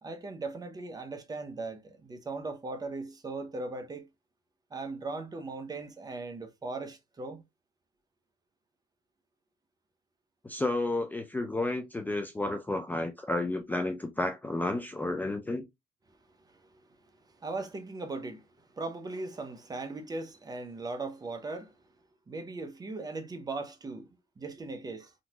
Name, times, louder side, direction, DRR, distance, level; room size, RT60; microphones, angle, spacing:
voice 1, 0.0-4.1 4.7-7.4 16.5-16.6 17.4-21.7 22.3-24.1 24.4-25.1, right 3 dB, 20° right, 0.7 m, -38 dB
voice 2, 10.4-15.7, left 2 dB, 10° left, 0.4 m, -31 dB
3.7 x 2.8 x 2.3 m
cardioid pair, 110°, 17 cm